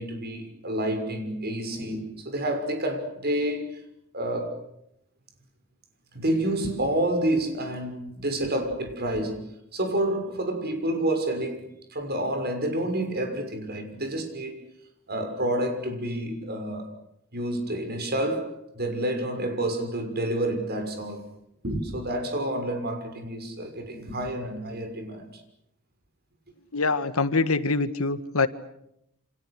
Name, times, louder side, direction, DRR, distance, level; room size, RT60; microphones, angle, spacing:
voice 1, 0.0-3.8 4.1-4.7 6.1-9.4 9.7-14.6 15.1-16.9 17.3-21.2 21.6-25.4, right 1 dB, 45° right, 6.3 m, -29 dB
voice 2, 26.7-28.5, left 3 dB, 70° left, 1.6 m, -24 dB
29.0 x 28.0 x 6.6 m
head